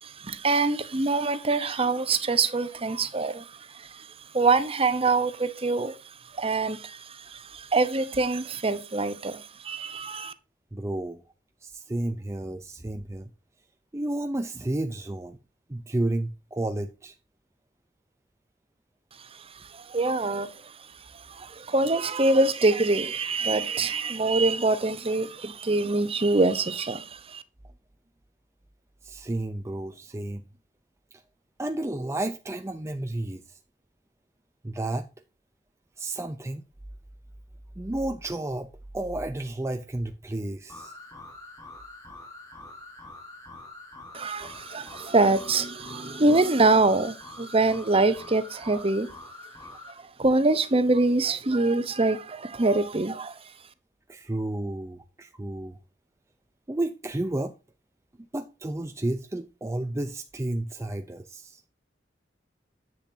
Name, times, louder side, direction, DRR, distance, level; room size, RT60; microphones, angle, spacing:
voice 1, 0.0-10.3 19.2-27.4 44.1-49.1 49.9-53.5, right 3 dB, 35° right, 0.9 m, -25 dB
voice 2, 10.7-11.2 11.6-13.3 13.9-15.4 15.7-17.2 29.0-30.4 31.6-33.6 34.6-35.1 36.0-36.6 37.8-40.9 54.1-55.8 56.7-57.5 58.3-61.6, right 1 dB, 15° right, 0.5 m, -31 dB
sound 1, 40.7-50.0, left 2 dB, 20° left, 5.2 m, -45 dB
10.0 x 7.9 x 2.7 m
head